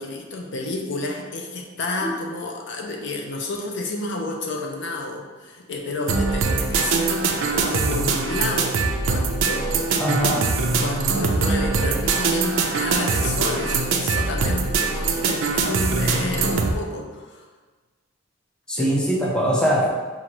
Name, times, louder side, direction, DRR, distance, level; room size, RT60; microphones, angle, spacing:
voice 1, 0.0-10.1 10.8-17.5 18.8-18.9, left 2 dB, 60° left, 2 dB, 0.5 m, -30 dB
sound 1, 6.1-16.7, right 4 dB, 70° right, 0.4 m, -22 dB
voice 2, 10.0-10.5 18.7-19.9, equal, 5° left, -4 dB, 0.4 m, -22 dB
5.5 x 2.5 x 2.9 m, 1.3 s
head